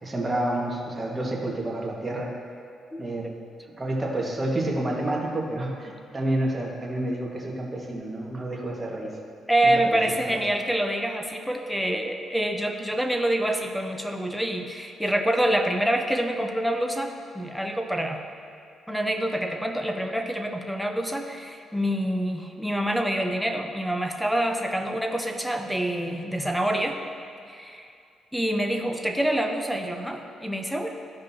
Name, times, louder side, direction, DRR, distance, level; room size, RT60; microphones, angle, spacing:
voice 1, 0.0-2.3 3.0-3.3 3.8-9.1 9.7-10.0 10.3-10.4, right 1 dB, 20° right, -3 dB, 1.7 m, -29 dB
voice 2, 2.9-3.4 9.5-18.2 18.9-27.0 27.5-27.9 28.3-30.9, right 1 dB, ahead, 4 dB, 0.8 m, -26 dB
14.0 x 5.2 x 2.8 m, 2.5 s
cardioid pair, 90°, 0 cm